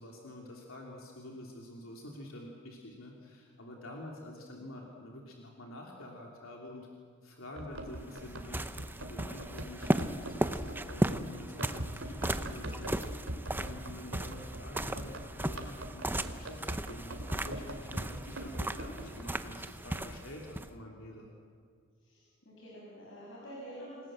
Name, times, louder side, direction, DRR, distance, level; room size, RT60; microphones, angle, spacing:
voice 1, 0.0-6.9 7.2-21.3, left 1 dB, 90° left, -1 dB, 3.2 m, -48 dB
Run, 7.5-19.2, right 1 dB, 75° right, 2.8 m, -43 dB
sound 1, 7.8-20.7, right 1 dB, 10° right, 0.8 m, -36 dB
voice 2, 22.0-24.1, equal, 70° left, -5 dB, 6.3 m, -47 dB
28.0 x 19.0 x 7.7 m, 2.1 s
head